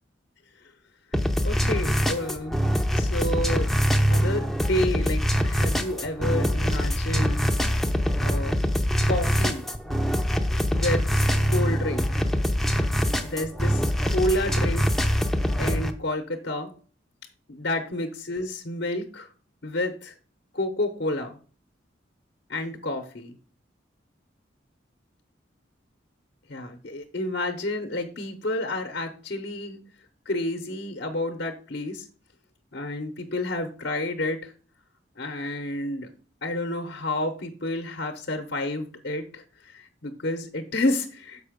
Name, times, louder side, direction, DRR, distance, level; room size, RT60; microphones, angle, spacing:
sound 1, 1.1-15.9, equal, ahead, 0.6 m, -24 dB
voice 1, 1.4-2.6 3.0-7.4 8.2-8.5 9.1-9.9 10.7-12.1 13.2-14.8 15.6-16.7 17.5-19.3 19.6-20.1 20.5-21.4 22.5-23.3 26.5-29.8 30.3-32.0 32.7-34.5 35.2-36.1 36.4-41.4, left 1 dB, 60° left, 6 dB, 0.9 m, -30 dB
6.8 x 5.5 x 5.0 m, 0.39 s
head